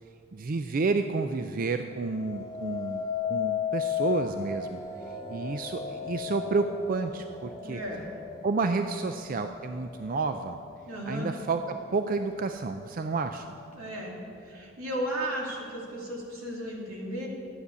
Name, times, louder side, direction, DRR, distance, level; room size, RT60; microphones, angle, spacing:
voice 1, 0.3-4.8 5.3-7.8 8.4-10.6 11.1-13.5, right 4 dB, 40° right, 7 dB, 0.4 m, -30 dB
sound 1, 2.0-11.2 11.7-12.2, left 8 dB, 15° left, 1.0 m, -35 dB
voice 2, 7.6-8.1 10.9-11.3 13.7-17.3, equal, 85° right, -1 dB, 2.7 m, -35 dB
13.0 x 9.7 x 6.8 m, 2.5 s
head